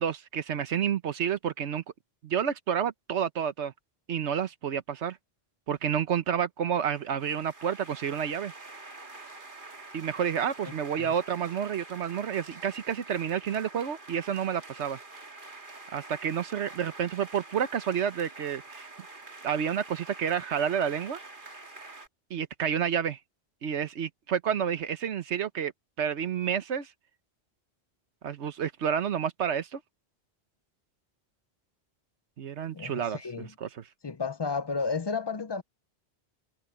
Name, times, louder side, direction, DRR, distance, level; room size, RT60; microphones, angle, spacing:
voice 1, 0.0-1.8 2.2-3.7 4.1-5.2 5.7-8.5 9.9-15.0 15.9-18.9 19.4-21.2 22.3-23.2 23.6-25.7 26.0-26.9 28.2-29.8 32.4-33.7, right 8 dB, 90° right, 1.3 m, -30 dB
sound 1, 6.9-22.1, right 3 dB, 50° right, 2.2 m, -46 dB
voice 2, 32.7-33.5 34.0-35.6, left 4 dB, 35° left, 0.4 m, -32 dB
omnidirectional pair, 1.1 m